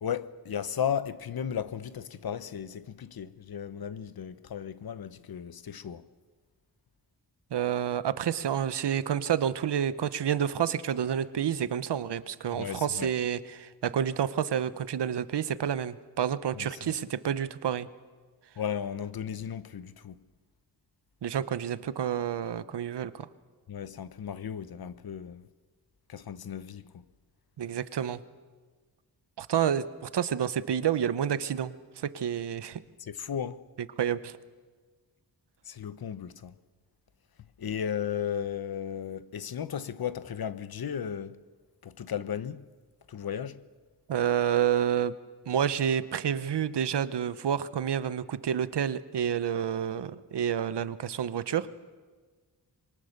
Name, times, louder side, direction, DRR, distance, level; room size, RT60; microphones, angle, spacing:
voice 1, 0.0-6.0 12.5-13.1 16.5-16.7 18.6-20.2 23.7-25.4 26.1-27.0 33.0-33.6 35.7-36.5 37.6-41.4 41.8-42.6 43.1-43.6, left 8 dB, 60° left, 0.9 m, -35 dB
voice 2, 7.5-17.9 21.2-23.3 27.6-28.2 29.4-32.8 34.0-34.4 44.1-45.1 45.5-51.7, right 9 dB, 75° right, 0.9 m, -29 dB
26.0 x 23.0 x 6.6 m
wide cardioid pair, 165°, 41 cm